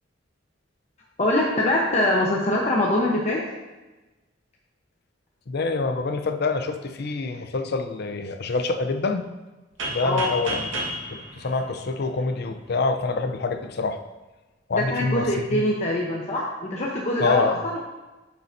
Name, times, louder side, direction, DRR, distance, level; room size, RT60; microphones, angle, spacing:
voice 1, 1.2-3.4 10.0-10.3 14.7-17.8, left 1 dB, 35° left, -4 dB, 0.9 m, -23 dB
voice 2, 5.5-9.3 9.9-10.7 11.4-14.0 14.7-15.6 17.2-17.6, left 3 dB, 55° left, 7 dB, 0.6 m, -26 dB
sound 1, 9.8-12.5, right 1 dB, 85° right, 1.5 m, -32 dB
9.5 x 6.8 x 2.7 m, 1.1 s
head